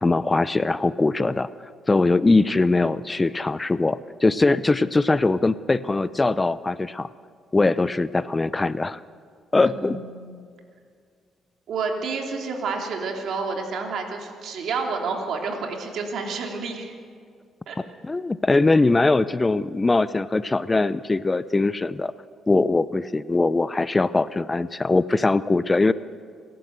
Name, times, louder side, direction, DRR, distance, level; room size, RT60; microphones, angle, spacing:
voice 1, 0.0-1.5 1.9-7.1 7.5-9.0 9.5-10.0 18.0-22.1 22.5-25.9, left 3 dB, 20° left, 16 dB, 0.5 m, -21 dB
voice 2, 9.6-10.4 11.7-16.9 17.7-17.8, right 4 dB, 70° right, 2 dB, 3.2 m, -29 dB
27.5 x 11.5 x 8.0 m, 2.2 s
cardioid pair, 90°, 0 cm